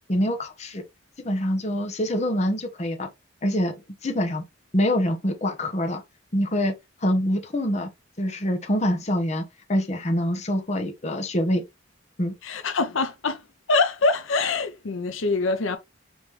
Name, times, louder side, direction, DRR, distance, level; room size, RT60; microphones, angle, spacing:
voice 1, 0.1-0.8 1.2-3.1 3.4-3.7 4.0-4.4 4.7-6.0 6.3-6.7 7.0-7.9 8.2-9.4 9.7-11.6 12.2-12.3, equal, 35° left, 0.9 m, -25 dB
voice 2, 12.4-15.8, left 3 dB, 80° left, 0.7 m, -24 dB
5.4 x 3.1 x 3.2 m
head